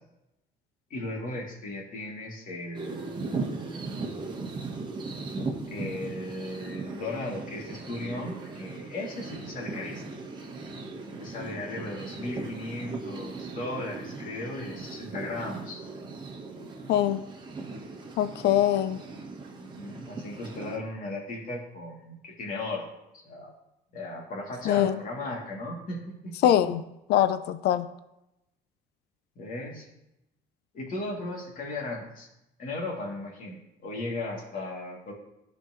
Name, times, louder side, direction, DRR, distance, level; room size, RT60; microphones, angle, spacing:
voice 1, 0.9-4.0 5.7-10.0 11.2-15.8 19.5-22.9 23.1-23.5 23.9-26.5 29.4-29.9 30.7-32.3 32.6-35.1, left 2 dB, 55° left, -2 dB, 2.8 m, -36 dB
sound 1, 2.7-20.8, right 3 dB, 25° right, 1.3 m, -38 dB
voice 2, 16.9-17.2 18.2-19.0 24.7-25.0 26.4-26.8 27.1-27.9, left 11 dB, 75° left, 12 dB, 0.5 m, -23 dB
14.0 x 5.2 x 3.2 m, 0.88 s
cardioid pair, 110°, 17 cm